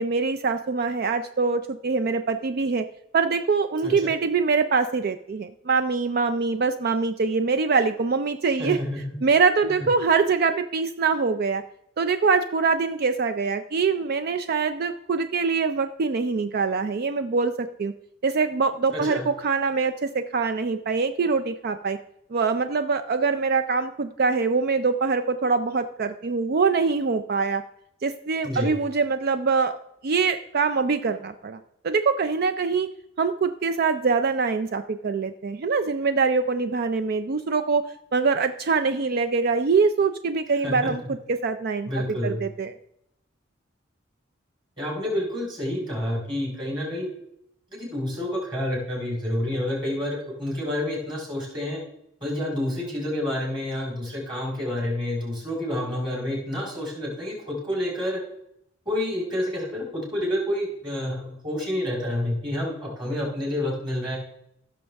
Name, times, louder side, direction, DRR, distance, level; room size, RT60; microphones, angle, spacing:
voice 1, 0.0-2.9 3.1-8.8 9.2-11.6 12.0-17.9 18.2-22.0 22.3-27.6 28.0-29.7 30.0-32.9 33.2-37.8 38.1-41.0 41.3-41.9 42.2-42.8, right 4 dB, 50° right, 10 dB, 0.4 m, -24 dB
voice 2, 8.6-9.2 9.7-9.9 18.9-19.3 28.4-28.7 40.6-40.8 41.9-42.4 44.8-47.1 47.8-51.8 52.2-58.2 58.9-64.2, left 1 dB, 25° right, -2 dB, 3.9 m, -29 dB
16.0 x 6.3 x 3.4 m, 0.77 s
head